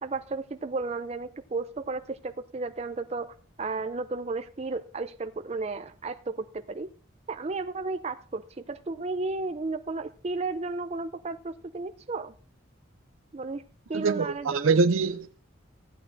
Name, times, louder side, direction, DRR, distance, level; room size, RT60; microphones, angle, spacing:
voice 1, 0.0-6.9 7.3-12.3 13.3-13.6 13.9-14.8, right 3 dB, 30° right, 0.4 m, -33 dB
voice 2, 13.9-15.4, right 4 dB, 85° right, 0.6 m, -24 dB
15.0 x 8.7 x 2.6 m
head